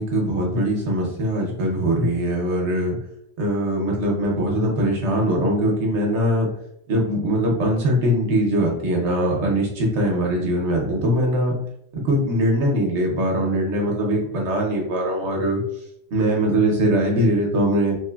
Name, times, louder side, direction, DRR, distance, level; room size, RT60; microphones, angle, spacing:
voice 1, 0.0-3.0 3.4-6.5 6.9-11.6 11.9-15.6 16.1-18.0, right 1 dB, 65° right, -1 dB, 1.0 m, -21 dB
3.1 x 2.0 x 2.3 m, 0.73 s
omnidirectional pair, 1.3 m